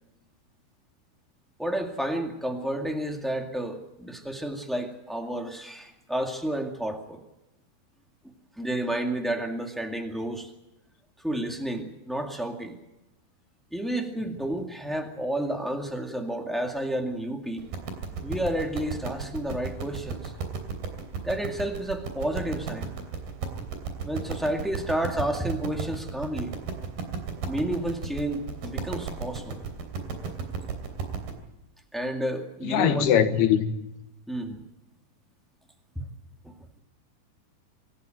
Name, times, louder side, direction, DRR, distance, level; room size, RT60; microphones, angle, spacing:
voice 1, 1.6-7.2 8.6-10.5 11.2-12.7 13.7-17.6 18.2-20.3 21.2-22.9 24.0-26.5 27.5-29.6 30.2-30.3 31.9-33.3 34.3-34.6 35.9-36.0 36.4-36.5, right 1 dB, ahead, 0.6 m, -31 dB
sound 1, 17.6-31.3, right 5 dB, 75° right, 4.9 m, -34 dB
voice 2, 32.7-33.7, left 9 dB, 90° left, 3.5 m, -21 dB
25.5 x 14.0 x 9.1 m
omnidirectional pair, 4.4 m